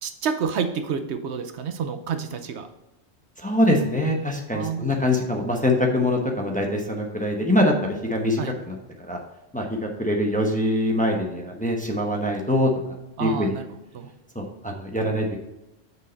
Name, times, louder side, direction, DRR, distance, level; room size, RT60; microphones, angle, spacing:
voice 1, 0.0-2.7 4.5-4.9 8.4-8.5 13.2-13.7 13.9-14.1, right 6 dB, 70° right, 8 dB, 0.9 m, -29 dB
voice 2, 3.4-9.2 9.5-12.7 13.2-13.5 14.3-15.4, left 1 dB, 10° left, 1 dB, 0.9 m, -24 dB
6.2 x 5.6 x 4.0 m, 0.96 s
omnidirectional pair, 1.2 m